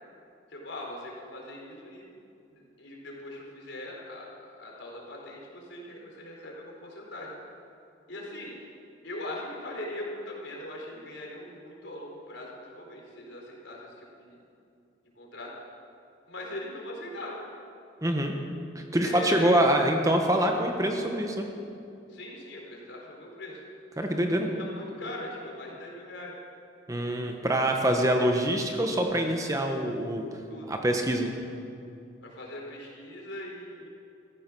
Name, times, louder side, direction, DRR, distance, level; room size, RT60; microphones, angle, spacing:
voice 1, 0.5-2.0 2.5-4.3 4.6-7.3 8.1-8.6 9.0-14.4 15.2-15.5 16.3-17.4 19.0-19.5 22.1-23.6 24.5-26.3 30.5-30.7 32.2-33.9, left 1 dB, 75° left, -1 dB, 4.0 m, -40 dB
voice 2, 18.0-18.3 18.7-21.4 24.0-24.5 26.9-30.2 30.7-31.3, right 1 dB, 15° right, 3 dB, 1.1 m, -25 dB
15.0 x 14.5 x 6.2 m, 2.6 s
head